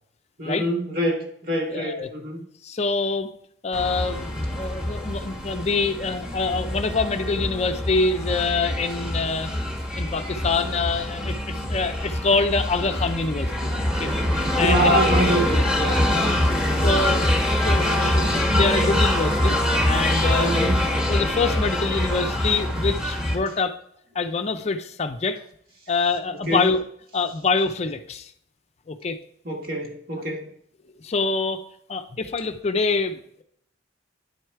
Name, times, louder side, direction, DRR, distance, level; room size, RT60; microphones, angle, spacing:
voice 1, 0.4-2.4 14.6-16.9 20.4-20.9 26.5-26.6 29.4-30.5, equal, 50° right, 1 dB, 1.6 m, -26 dB
voice 2, 1.7-2.1 2.6-3.3 3.6-9.5 10.0-13.7 14.0-14.1 14.6-15.0 16.8-19.6 19.8-20.5 21.1-23.8 24.1-25.4 25.9-26.8 27.1-28.3 28.9-29.2 31.0-31.6 31.9-33.4, left 4 dB, 35° left, 8 dB, 0.5 m, -25 dB
sound 1, 3.7-23.4, left 1 dB, 5° right, 1.3 m, -24 dB
9.6 x 4.7 x 4.5 m, 0.70 s
head